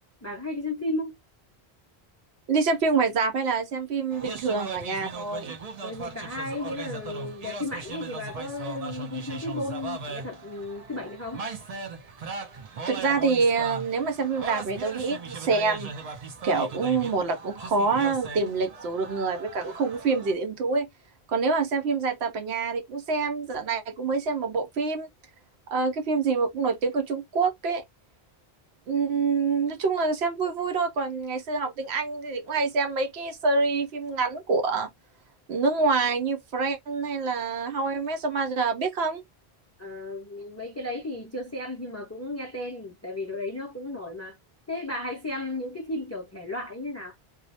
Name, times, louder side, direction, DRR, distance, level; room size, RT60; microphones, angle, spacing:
voice 1, 0.2-1.2 5.8-11.4 39.8-44.4 44.7-47.2, left 2 dB, 25° left, 0.3 m, -34 dB
voice 2, 2.5-5.5 12.9-16.1 16.4-20.9 21.3-25.1 25.7-27.8 28.9-34.9 35.5-39.2, right 4 dB, 75° right, 0.9 m, -26 dB
sound 1, 4.1-20.3, right 4 dB, 50° right, 0.5 m, -38 dB
2.3 x 2.0 x 2.7 m
omnidirectional pair, 1.1 m